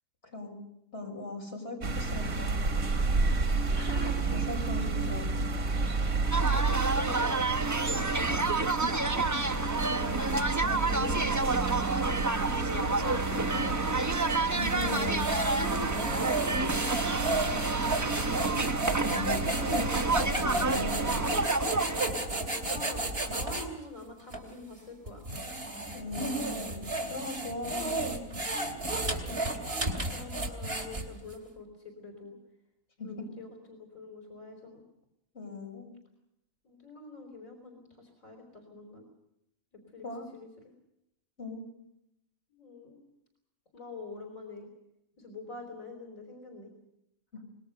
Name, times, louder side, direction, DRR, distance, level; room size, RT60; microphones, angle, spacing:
voice 1, 0.2-0.5 0.9-2.6 4.5-5.4 10.6-11.4 13.5-13.8 14.5-15.3 19.0-21.4 25.9-28.3 33.0-33.3 35.3-35.9 40.0-40.3 41.4-41.7, left 3 dB, 55° left, 1 dB, 6.5 m, -39 dB
sound 1, 1.8-21.5, right 3 dB, 85° right, 2.3 m, -31 dB
voice 2, 3.7-4.2 6.3-7.4 7.8-8.5 12.2-14.1 15.5-18.2 22.7-25.3 29.2-32.4 33.0-34.8 36.6-39.0 39.7-40.1 40.3-40.7 42.5-43.0 43.7-44.7 45.2-46.7, left 2 dB, 80° left, 3 dB, 4.7 m, -44 dB
sound 2, 6.3-22.0, right 3 dB, 15° right, 0.8 m, -30 dB
sound 3, 14.5-23.7 24.3-24.4 25.1-31.3, right 2 dB, 45° right, 3.5 m, -33 dB
25.5 x 21.0 x 6.8 m, 0.83 s
omnidirectional pair, 1.4 m